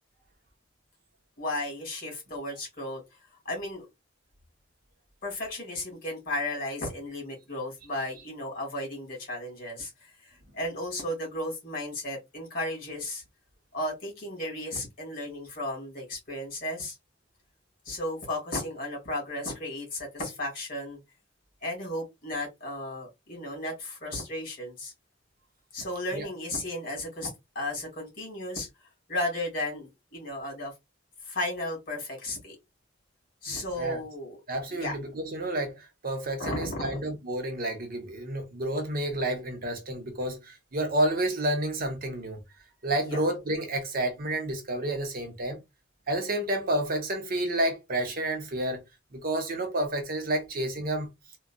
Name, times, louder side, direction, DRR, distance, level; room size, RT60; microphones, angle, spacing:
voice 1, 1.4-3.0 3.5-3.9 5.2-9.9 10.2-13.2 13.7-17.0 17.9-21.0 21.6-24.9 25.7-27.3 27.6-28.7 29.1-30.7 31.3-32.6 33.4-34.4 34.7-35.0 36.4-37.0 43.0-43.2, left 1 dB, 50° left, 2.0 m, -34 dB
voice 2, 33.5-34.0 34.5-42.4 42.8-45.6 46.1-48.8 49.1-51.1, right 1 dB, 50° right, 0.8 m, -30 dB
3.8 x 2.3 x 2.2 m
head